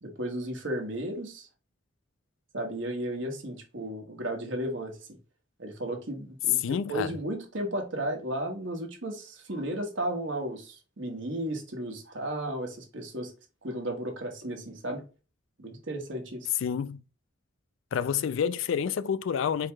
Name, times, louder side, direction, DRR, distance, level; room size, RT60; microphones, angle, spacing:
voice 1, 0.0-1.5 2.5-5.1 5.6-13.3 13.6-15.0 15.6-16.5, right 1 dB, 70° right, 1.2 m, -34 dB
voice 2, 6.6-7.1 16.6-17.0 17.9-19.7, left 7 dB, 75° left, 0.3 m, -29 dB
4.6 x 2.3 x 4.6 m
head